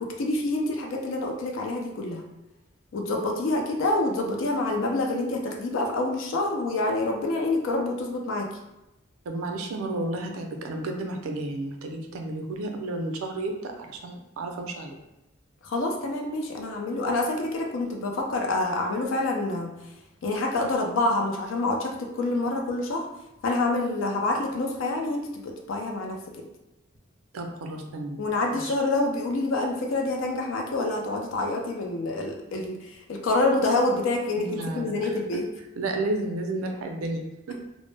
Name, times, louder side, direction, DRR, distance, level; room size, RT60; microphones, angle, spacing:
voice 1, 0.0-2.2 2.9-8.5 15.6-19.7 20.2-23.0 23.4-26.4 28.2-35.5, left 2 dB, 65° left, 2 dB, 0.4 m, -27 dB
voice 2, 9.3-15.0 27.3-28.2 28.5-28.7 34.4-35.4 35.8-37.6, right 2 dB, 85° right, 3 dB, 0.4 m, -32 dB
2.0 x 2.0 x 3.1 m, 0.92 s
head